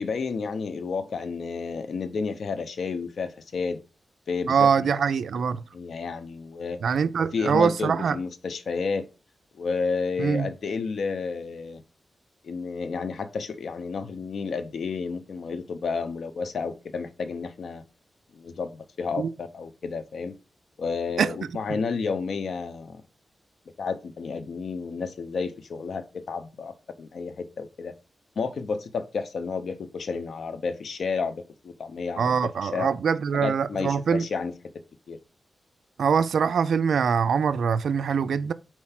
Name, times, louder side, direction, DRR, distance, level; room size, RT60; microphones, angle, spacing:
voice 1, 0.0-3.8 4.3-5.0 5.7-6.8 7.3-9.1 9.6-11.8 12.4-17.8 18.3-20.4 20.8-23.0 23.8-27.9 28.4-32.9 33.3-34.5 35.1-35.2, left 5 dB, 70° left, 0.7 m, -31 dB
voice 2, 4.5-5.6 6.8-8.2 10.2-10.5 19.2-19.3 21.2-21.3 21.7-21.8 32.2-34.3 36.0-38.5, right 6 dB, 85° right, 0.4 m, -23 dB
4.5 x 4.4 x 5.8 m
wide cardioid pair, 115°, 0 cm